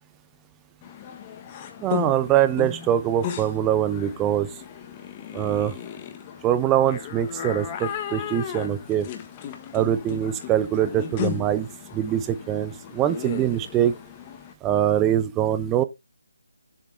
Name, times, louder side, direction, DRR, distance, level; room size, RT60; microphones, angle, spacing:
sound 1, 0.8-14.5, left 9 dB, 25° left, 1.1 m, -36 dB
voice 1, 1.8-4.5 5.3-5.7 6.4-9.1 9.7-11.7 11.9-13.9 14.6-15.8, right 11 dB, 15° right, 0.6 m, -23 dB
7.4 x 5.1 x 3.2 m
figure-of-eight pair, 155°, 0 cm